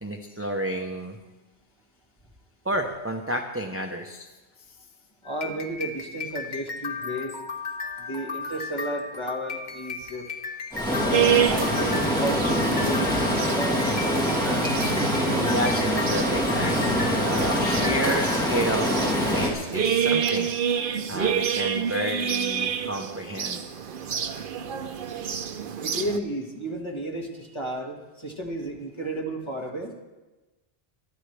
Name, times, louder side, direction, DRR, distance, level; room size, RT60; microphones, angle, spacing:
voice 1, 0.0-1.2 2.6-4.3 4.7-4.8 15.4-20.5 21.1-23.6, right 1 dB, 15° right, 2 dB, 0.8 m, -31 dB
sound 1, 5.2-18.5, left 4 dB, 45° left, 1.2 m, -35 dB
voice 2, 5.2-7.4 8.0-10.3 11.0-14.4 25.8-29.9, right 1 dB, 25° left, 0 dB, 1.9 m, -33 dB
Stream, 10.7-19.5, equal, 5° left, 2.5 m, -24 dB
sound 2, 11.1-26.2, right 8 dB, 55° right, 0.8 m, -29 dB
22.5 x 12.5 x 3.4 m, 1.1 s
omnidirectional pair, 1.1 m